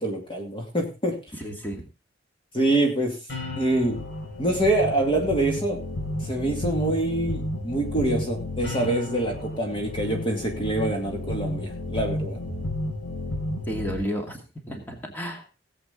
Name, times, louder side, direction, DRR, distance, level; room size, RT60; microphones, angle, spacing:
voice 1, 0.0-1.2 2.5-3.2 3.6-4.0 4.4-5.8 6.2-12.4, right 1 dB, 30° left, 1 dB, 2.3 m, -25 dB
voice 2, 1.3-1.8 13.7-15.5, equal, 10° left, 1 dB, 2.5 m, -32 dB
sound 1, 3.3-14.0, left 1 dB, 85° left, 6.1 m, -32 dB
18.5 x 8.0 x 3.9 m, 0.30 s
head